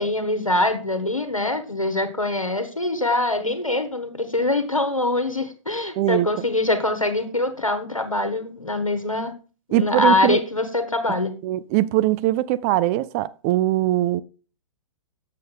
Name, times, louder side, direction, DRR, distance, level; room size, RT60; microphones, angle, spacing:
voice 1, 0.0-9.3 9.7-11.3, left 2 dB, 90° left, 1.1 m, -23 dB
voice 2, 6.0-6.3 9.7-10.4 11.4-14.2, right 15 dB, 25° right, 0.3 m, -21 dB
7.7 x 6.5 x 3.7 m
figure-of-eight pair, 110°, 17 cm